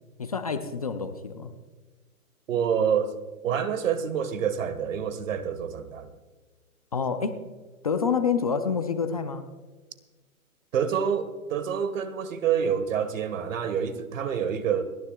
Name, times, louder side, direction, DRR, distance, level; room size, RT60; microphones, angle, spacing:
voice 1, 0.2-1.5 6.9-7.4 7.8-9.5, left 6 dB, 25° left, 7 dB, 0.5 m, -27 dB
voice 2, 2.5-3.1 3.4-6.1 10.7-14.8, right 7 dB, 60° right, 12 dB, 1.5 m, -27 dB
30.0 x 10.5 x 2.3 m, 1.3 s
hypercardioid pair, 165°, 43 cm